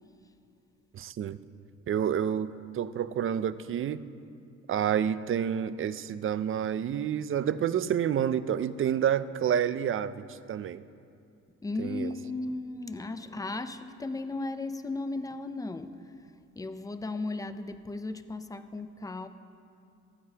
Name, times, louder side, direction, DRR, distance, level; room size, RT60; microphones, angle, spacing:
voice 1, 0.9-1.4 1.9-4.0 4.7-10.8 11.8-12.1, right 9 dB, 45° right, 15 dB, 0.4 m, -29 dB
voice 2, 11.6-16.0 16.5-19.3, left 2 dB, 10° left, 10 dB, 0.6 m, -35 dB
14.0 x 14.0 x 2.9 m, 2.5 s
cardioid pair, 90°, 30 cm